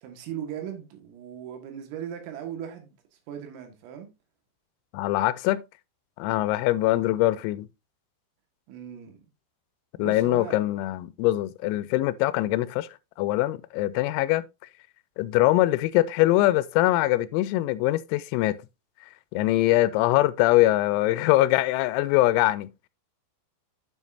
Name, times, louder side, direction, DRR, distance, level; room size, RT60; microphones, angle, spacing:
voice 1, 0.0-3.0 3.3-4.1 8.7-9.2 10.0-10.6, right 9 dB, 80° right, 4.2 m, -38 dB
voice 2, 4.9-5.6 6.2-7.7 10.0-12.9 13.2-14.4 15.2-18.6 19.3-22.7, left 16 dB, 85° left, 3.3 m, -23 dB
9.3 x 7.2 x 2.6 m
omnidirectional pair, 6.0 m